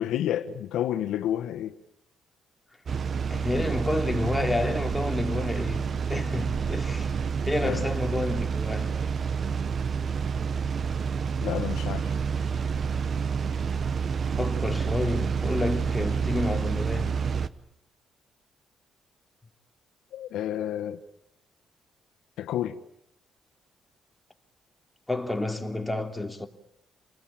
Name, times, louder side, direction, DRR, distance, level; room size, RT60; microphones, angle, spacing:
voice 1, 0.0-1.8 7.6-7.9 11.4-12.1 20.1-21.0 22.4-22.8, left 11 dB, 85° left, 1.3 m, -30 dB
sound 1, 2.9-17.5, right 6 dB, 50° right, 1.2 m, -28 dB
voice 2, 3.3-7.1 7.5-9.0 14.4-17.1 25.1-26.5, left 2 dB, 10° left, 3.1 m, -30 dB
29.0 x 19.5 x 8.9 m
cardioid pair, 90°, 0 cm